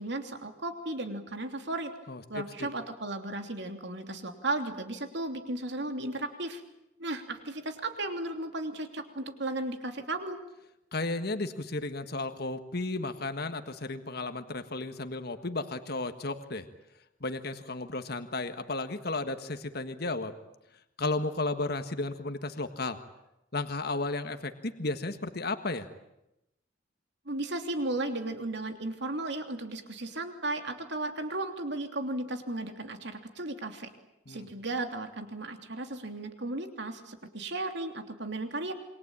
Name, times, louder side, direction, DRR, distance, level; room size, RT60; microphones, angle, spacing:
voice 1, 0.0-1.9 2.3-6.6 7.0-10.4 27.2-33.9 34.3-38.7, right 2 dB, 60° right, 6 dB, 3.1 m, -35 dB
voice 2, 2.1-2.7 10.9-16.6 17.2-20.3 21.0-23.0 23.5-25.9 34.3-34.5, left 2 dB, 50° left, 8 dB, 1.6 m, -34 dB
28.0 x 23.5 x 8.9 m, 0.88 s
head